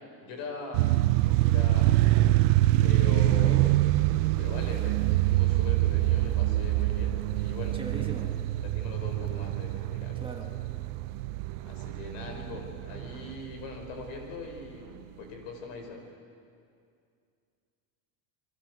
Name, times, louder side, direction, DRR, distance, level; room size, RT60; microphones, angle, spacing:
voice 1, 0.2-0.9 1.2-2.4 2.8-3.7 4.0-7.8 8.6-10.4 11.6-16.0, left 4 dB, 65° left, 3 dB, 5.7 m, -41 dB
sound 1, 0.7-13.9, right 16 dB, 60° right, 0.7 m, -25 dB
voice 2, 7.7-8.3 10.1-10.5, right 4 dB, 10° right, 0 dB, 1.4 m, -39 dB
29.5 x 23.0 x 6.4 m, 2.3 s
cardioid pair, 175°, 42 cm